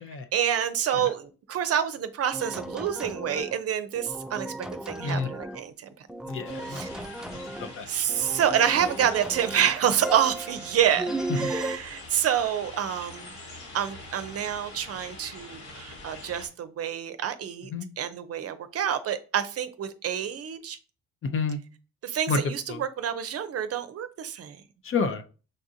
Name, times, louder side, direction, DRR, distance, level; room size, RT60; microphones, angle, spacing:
voice 1, 0.3-5.9 6.7-6.9 7.9-13.3 13.7-20.8 22.0-24.6, right 9 dB, 50° right, 0.5 m, -28 dB
sound 1, 2.3-3.6 4.0-5.7 6.1-7.8 8.1-9.8 10.0-11.8, right 1 dB, ahead, 0.3 m, -35 dB
voice 2, 6.2-6.8 7.6-7.9 11.4-11.5 17.7-17.9 21.2-21.6 22.3-22.4 22.7-22.8 24.8-25.2, left 4 dB, 45° left, 0.6 m, -29 dB
sound 2, 6.4-16.5, left 2 dB, 65° left, 1.7 m, -44 dB
6.4 x 2.4 x 2.7 m
cardioid pair, 90°, 30 cm